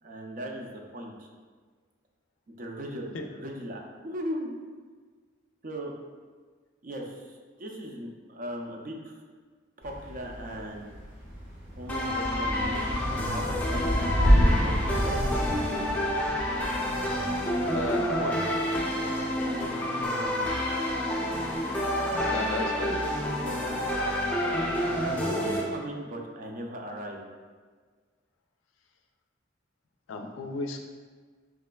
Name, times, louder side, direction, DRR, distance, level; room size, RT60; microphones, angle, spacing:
voice 1, 0.0-1.3 2.5-4.5 5.6-5.9 6.8-9.2 9.8-10.9 11.8-15.2 19.5-20.9 22.0-23.0 25.0-27.2, equal, 45° right, 1 dB, 0.5 m, -38 dB
Thunder / Rain, 9.8-18.1, equal, 80° right, 1.3 m, -28 dB
sound 1, 11.9-25.6, left 1 dB, 10° left, 0.6 m, -29 dB
voice 2, 17.7-18.4 22.0-22.9 30.1-30.8, left 2 dB, 75° left, 4 dB, 0.4 m, -34 dB
4.8 x 3.2 x 2.2 m, 1.5 s
head